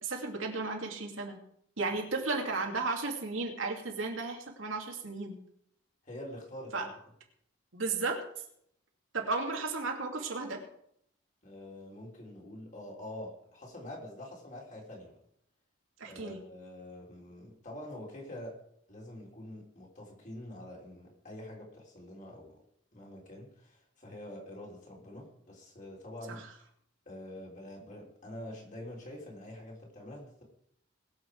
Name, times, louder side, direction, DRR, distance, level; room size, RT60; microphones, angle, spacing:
voice 1, 0.0-1.4 1.8-5.4 6.7-6.9 7.7-8.2 9.1-10.6 16.0-16.4 26.3-26.5, right 3 dB, 80° right, 1 dB, 2.5 m, -34 dB
voice 2, 6.0-6.9 11.4-15.2 16.0-18.6 18.9-22.6 22.9-26.4 27.1-30.4, left 1 dB, 40° left, -2 dB, 3.7 m, -46 dB
21.0 x 7.1 x 4.8 m, 0.71 s
head